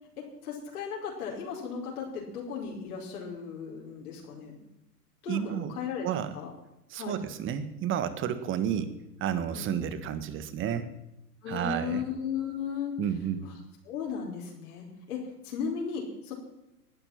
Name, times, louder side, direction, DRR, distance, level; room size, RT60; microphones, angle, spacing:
voice 1, 0.4-4.6 5.2-6.1 6.3-6.5 7.0-7.2 9.5-9.7 11.4-12.9 13.8-16.3, left 6 dB, 65° left, -2 dB, 5.1 m, -36 dB
voice 2, 5.3-5.8 6.0-6.3 6.9-8.9 9.2-10.9 11.5-12.0 13.0-13.5, right 9 dB, 25° right, 12 dB, 1.7 m, -31 dB
19.5 x 11.0 x 5.9 m, 0.92 s
hypercardioid pair, 120°, 47 cm